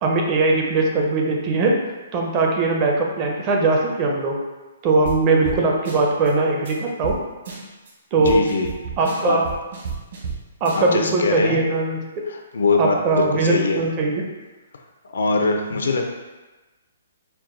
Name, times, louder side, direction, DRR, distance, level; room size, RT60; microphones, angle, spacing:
voice 1, 0.0-1.8 2.1-4.4 4.8-7.2 8.1-8.4 9.0-9.4 10.6-12.0 12.8-14.2, right 3 dB, 25° right, 0 dB, 0.5 m, -20 dB
sound 1, 5.1-5.2 5.4-5.6 5.9-6.3 6.7-6.8 7.0-7.2 7.5-7.9 8.2-10.4 10.7-11.1, right 6 dB, 55° right, 1.0 m, -31 dB
voice 2, 8.2-8.7 9.3-9.4 10.8-11.6 12.3-13.8 15.0-16.1, left 3 dB, 85° left, 3 dB, 0.6 m, -22 dB
4.5 x 2.2 x 3.7 m, 1.2 s
hypercardioid pair, 170°, 0 cm